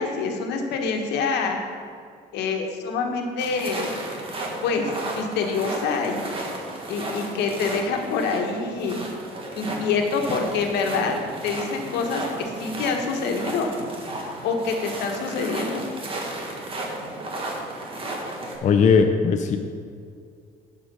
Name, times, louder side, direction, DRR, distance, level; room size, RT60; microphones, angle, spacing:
voice 1, 0.0-1.6 2.3-3.9 4.6-6.3 6.9-9.0 9.6-11.2 11.4-13.7 14.4-15.8, left 4 dB, 80° left, 3 dB, 1.3 m, -26 dB
sound 1, 3.4-18.6, right 2 dB, 30° right, 1.8 m, -34 dB
voice 2, 18.6-19.6, left 5 dB, 45° left, 4 dB, 0.6 m, -18 dB
11.5 x 5.0 x 5.4 m, 2.3 s
cardioid pair, 110°, 17 cm